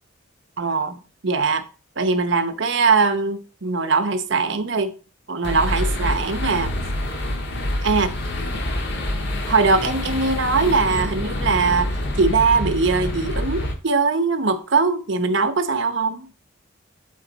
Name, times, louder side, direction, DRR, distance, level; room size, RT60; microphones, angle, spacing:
voice 1, 0.6-1.6 2.0-4.9 5.3-6.7 7.8-8.1 9.5-16.3, right 4 dB, 60° right, 1.0 m, -21 dB
sound 1, 5.4-13.7, left 1 dB, 60° left, 1.5 m, -26 dB
11.0 x 4.1 x 4.1 m
head